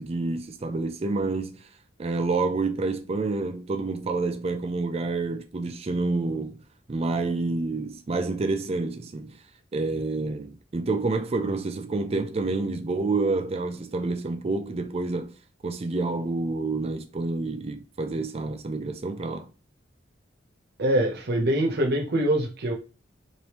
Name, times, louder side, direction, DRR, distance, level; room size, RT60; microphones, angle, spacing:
voice 1, 0.0-1.7 2.0-6.6 6.9-9.4 9.7-15.3 15.6-19.5, right 3 dB, 35° right, 0.4 m, -28 dB
voice 2, 20.8-22.7, right 1 dB, 60° right, 0.8 m, -24 dB
3.2 x 2.6 x 2.9 m
head